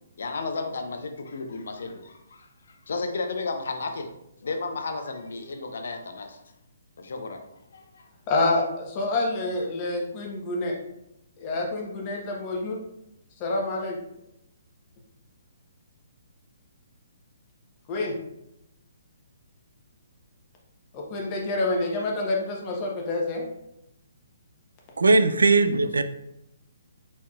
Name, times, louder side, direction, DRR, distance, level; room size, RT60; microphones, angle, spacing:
voice 1, 0.2-4.1 4.4-6.4 7.0-8.1, left 3 dB, 70° left, 6 dB, 0.6 m, -33 dB
voice 2, 8.3-10.8 11.4-12.8 13.4-14.0 17.9-18.1 20.9-23.4, left 2 dB, 30° left, 0 dB, 1.0 m, -27 dB
voice 3, 25.0-26.0, right 3 dB, 90° right, 10 dB, 0.3 m, -19 dB
4.6 x 4.3 x 2.3 m, 0.82 s
hypercardioid pair, 150°, 0 cm